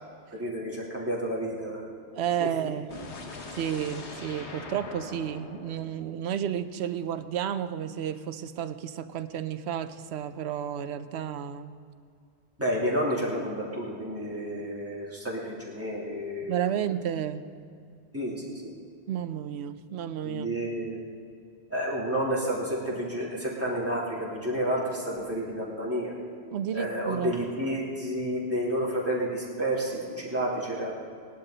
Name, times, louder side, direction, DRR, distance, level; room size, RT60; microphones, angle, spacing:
voice 1, 0.3-2.7 12.6-16.5 18.1-18.7 20.2-21.0 21.7-26.1 26.7-30.9, equal, 10° right, -7 dB, 3.2 m, -30 dB
voice 2, 2.1-2.9 3.5-11.7 16.4-17.4 19.1-20.5 26.5-27.4, right 9 dB, 70° right, 12 dB, 0.9 m, -32 dB
sound 1, 2.9-6.9, left 3 dB, 70° left, 1.5 m, -42 dB
19.0 x 11.5 x 4.0 m, 2.3 s
omnidirectional pair, 1.2 m